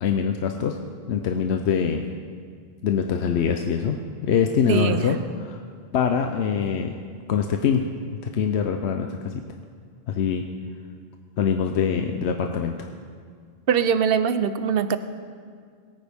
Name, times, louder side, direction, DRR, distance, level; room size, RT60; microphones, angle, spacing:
voice 1, 0.0-0.8 1.1-2.0 2.8-4.0 4.2-5.6 5.9-7.0 7.3-7.9 8.2-9.4 10.1-10.4 11.4-12.9, left 7 dB, 75° left, 5 dB, 1.0 m, -24 dB
voice 2, 4.7-5.1 13.7-15.0, right 7 dB, 65° right, 11 dB, 0.8 m, -22 dB
21.0 x 9.5 x 3.5 m, 2.1 s
omnidirectional pair, 1.1 m